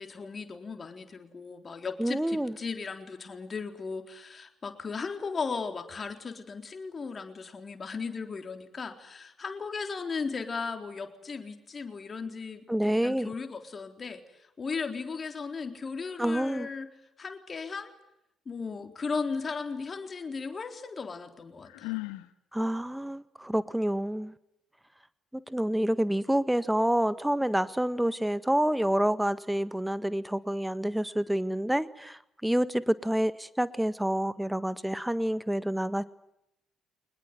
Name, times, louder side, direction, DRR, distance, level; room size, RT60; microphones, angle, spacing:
voice 1, 0.0-14.2 14.6-16.9 17.2-17.9 18.5-22.0, left 4 dB, 40° left, 6 dB, 3.9 m, -36 dB
voice 2, 2.0-2.5 12.7-13.3 16.2-16.7 22.5-24.3 25.3-36.0, right 1 dB, 5° right, 14 dB, 1.7 m, -28 dB
Sigh, 21.7-22.3, left 23 dB, 75° left, 1.3 m, -36 dB
24.5 x 21.0 x 9.3 m, 0.82 s
hypercardioid pair, 50°, 0 cm